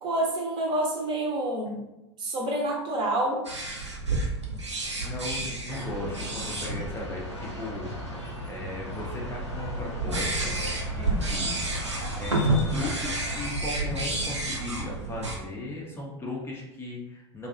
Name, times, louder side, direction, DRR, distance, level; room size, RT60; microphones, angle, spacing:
voice 1, 0.0-1.8 2.2-3.4, right 1 dB, 35° right, -1 dB, 0.7 m, -28 dB
sound 1, 3.4-15.4, right 2 dB, 90° right, 0.5 m, -31 dB
voice 2, 5.0-7.9 8.5-10.5 10.9-11.5 12.1-17.5, left 2 dB, 15° left, -3 dB, 0.5 m, -37 dB
sound 2, 5.7-13.6, left 1 dB, 90° left, 0.6 m, -39 dB
2.6 x 2.3 x 2.4 m, 0.93 s
figure-of-eight pair, 85°, 15 cm